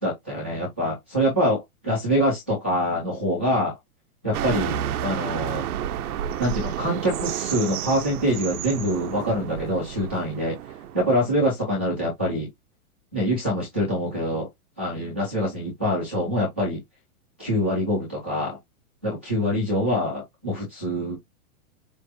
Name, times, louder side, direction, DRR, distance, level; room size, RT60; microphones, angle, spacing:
voice 1, 0.0-3.8 4.2-5.6 6.4-10.6 10.9-12.5 13.1-14.5 14.8-16.8 17.4-18.6 19.0-21.2, equal, 10° right, 0.4 m, -25 dB
sound 1, 4.3-11.4, right 10 dB, 85° right, 0.8 m, -31 dB
7.2 x 2.6 x 2.6 m
supercardioid pair, 175°, 43 cm